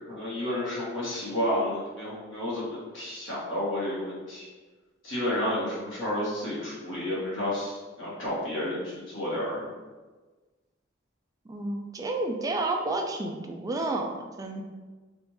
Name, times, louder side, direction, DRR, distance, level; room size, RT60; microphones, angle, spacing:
voice 1, 0.0-4.5 5.0-9.7, left 1 dB, 75° left, -7 dB, 1.5 m, -31 dB
voice 2, 11.5-14.6, right 2 dB, 20° right, 3 dB, 0.3 m, -31 dB
3.4 x 2.5 x 3.1 m, 1.3 s
head